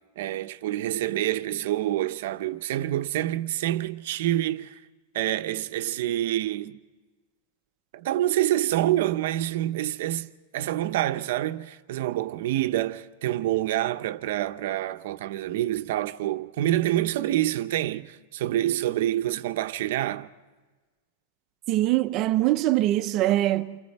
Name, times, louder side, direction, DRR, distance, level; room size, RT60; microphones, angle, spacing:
voice 1, 0.2-4.8 5.1-6.8 7.9-20.3, right 14 dB, 60° right, 0.8 m, -27 dB
voice 2, 21.7-23.8, right 15 dB, 30° right, 0.8 m, -23 dB
29.0 x 28.5 x 4.3 m
supercardioid pair, 175°, 0 cm